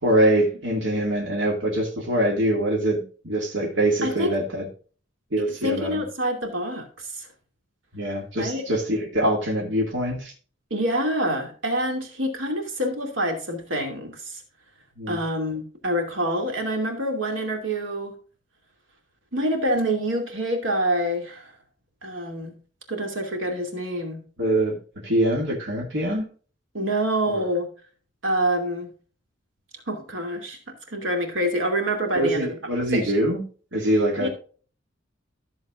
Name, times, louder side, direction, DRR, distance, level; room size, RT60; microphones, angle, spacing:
voice 1, 0.0-4.7 5.3-6.0 7.9-10.3 15.0-15.2 24.4-26.2 27.3-27.5 32.1-33.4 33.7-34.3, right 1 dB, 65° right, -1 dB, 2.2 m, -24 dB
voice 2, 4.0-4.3 5.6-7.3 8.4-8.6 10.7-14.4 15.1-18.2 19.3-21.5 22.0-22.6 22.9-24.2 26.7-27.7 28.2-28.9 29.9-30.6 30.9-32.5 32.9-33.1 34.2-34.3, right 1 dB, 85° right, 3 dB, 2.6 m, -26 dB
14.0 x 7.1 x 2.5 m, 0.39 s
head